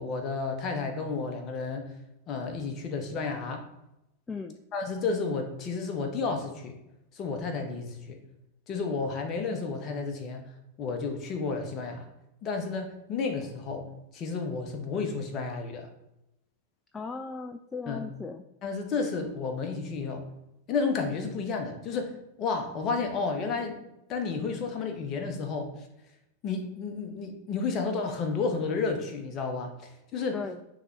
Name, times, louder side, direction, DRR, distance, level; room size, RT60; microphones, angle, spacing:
voice 1, 0.0-1.8 2.3-3.6 4.7-6.7 7.1-8.2 8.7-10.4 10.8-12.0 12.4-13.9 14.1-15.9 17.9-18.0 18.6-20.2 20.7-25.7 26.4-30.4, left 4 dB, 35° left, 4 dB, 1.1 m, -31 dB
voice 2, 4.3-4.6 16.9-18.4 30.3-30.6, left 4 dB, 15° left, 7 dB, 0.3 m, -37 dB
9.3 x 3.3 x 3.1 m, 0.89 s
figure-of-eight pair, 90°, 0 cm